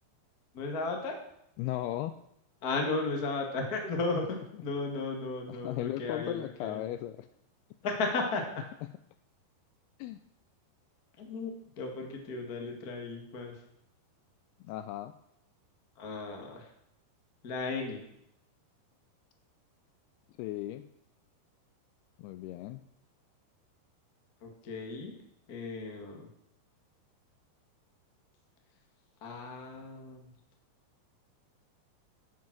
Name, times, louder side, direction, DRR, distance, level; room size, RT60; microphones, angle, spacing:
voice 1, 0.5-1.2 2.6-6.9 7.8-8.6 11.2-13.6 15.9-16.7 17.4-18.0 24.4-25.1 25.5-26.3 29.2-30.3, left 3 dB, 55° left, 2 dB, 1.0 m, -35 dB
voice 2, 1.6-2.2 5.6-7.3 10.0-10.2 14.6-15.1 20.4-20.9 22.2-22.8, left 14 dB, 85° left, 11 dB, 2.3 m, -36 dB
11.0 x 7.5 x 6.0 m, 0.76 s
omnidirectional pair, 4.9 m